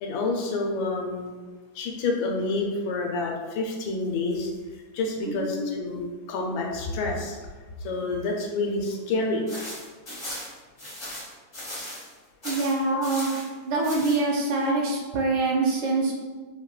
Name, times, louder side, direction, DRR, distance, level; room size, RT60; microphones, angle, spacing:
voice 1, 0.0-1.3 1.7-4.5 4.9-7.4 7.8-9.4, left 3 dB, 80° left, 0 dB, 1.3 m, -28 dB
voice 2, 5.3-5.7 12.4-13.3 13.6-16.1, right 3 dB, 75° right, -2 dB, 1.2 m, -25 dB
sound 1, 9.5-12.1 12.4-13.5 13.8-14.2, left 1 dB, 35° left, 0.4 m, -37 dB
4.1 x 2.1 x 2.3 m, 1.4 s
omnidirectional pair, 2.1 m